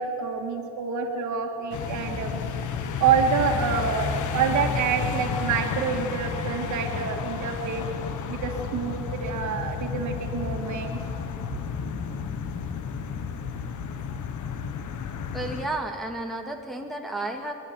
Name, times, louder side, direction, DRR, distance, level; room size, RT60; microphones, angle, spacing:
voice 1, 0.0-2.4 3.0-7.9 8.3-11.0, right 6 dB, 75° right, 3 dB, 2.0 m, -27 dB
sound 1, 1.7-15.7, left 6 dB, 80° left, 1.6 m, -31 dB
voice 2, 15.3-17.5, right 2 dB, ahead, 1 dB, 2.1 m, -32 dB
26.5 x 12.0 x 8.3 m, 2.7 s
cardioid pair, 90°, 30 cm